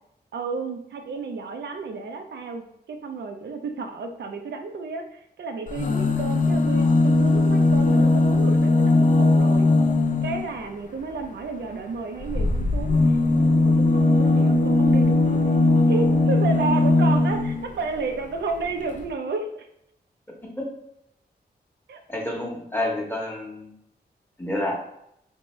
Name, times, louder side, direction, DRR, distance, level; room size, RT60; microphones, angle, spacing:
voice 1, 0.3-9.7 10.2-13.2 13.5-15.6 15.9-19.7 21.9-22.0, right 4 dB, 90° right, 5 dB, 0.5 m, -32 dB
sound 1, 5.7-10.5 12.2-17.7 18.6-18.7 18.9-19.0, left 2 dB, 45° left, 0.5 m, -19 dB
voice 2, 22.1-23.7 24.4-24.7, left 1 dB, 10° left, -2 dB, 1.1 m, -29 dB
3.4 x 2.7 x 3.1 m, 0.75 s
wide cardioid pair, 85°, 17 cm